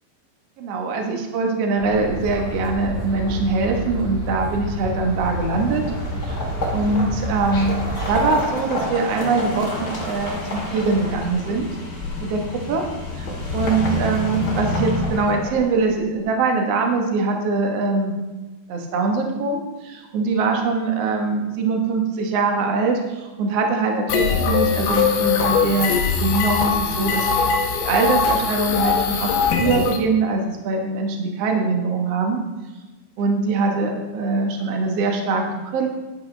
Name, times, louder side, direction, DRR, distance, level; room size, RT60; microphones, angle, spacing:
voice 1, 0.6-5.8 6.2-6.4 6.7-7.8 8.1-11.7 12.2-12.4 12.7-12.8 13.2-13.3 13.5-18.2 18.7-29.3 29.6-32.4 33.2-35.4 35.7-35.9, right 3 dB, 70° right, 2 dB, 1.5 m, -22 dB
sound 1, 1.8-8.3, right 1 dB, 10° left, 3.3 m, -29 dB
sound 2, 5.1-15.9, left 1 dB, 30° left, 2.0 m, -29 dB
sound 3, 24.1-30.0, left 6 dB, 70° left, 2.2 m, -21 dB
11.5 x 11.0 x 3.4 m, 1.2 s
omnidirectional pair, 5.0 m